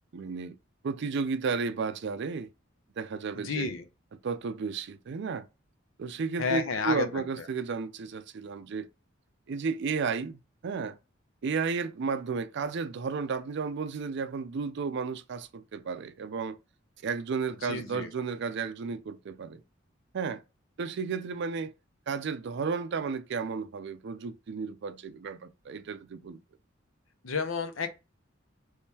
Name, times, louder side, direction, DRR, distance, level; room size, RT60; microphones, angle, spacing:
voice 1, 0.1-0.6 0.8-2.5 3.0-3.7 4.1-5.5 6.0-8.9 9.5-11.0 11.4-16.6 17.0-19.6 20.1-20.4 20.8-21.7 22.1-26.4, right 5 dB, 60° right, 0.4 m, -33 dB
voice 2, 3.3-3.8 6.4-7.1 17.7-18.1 27.2-27.9, left 5 dB, 85° left, 0.7 m, -30 dB
3.6 x 3.1 x 2.8 m
head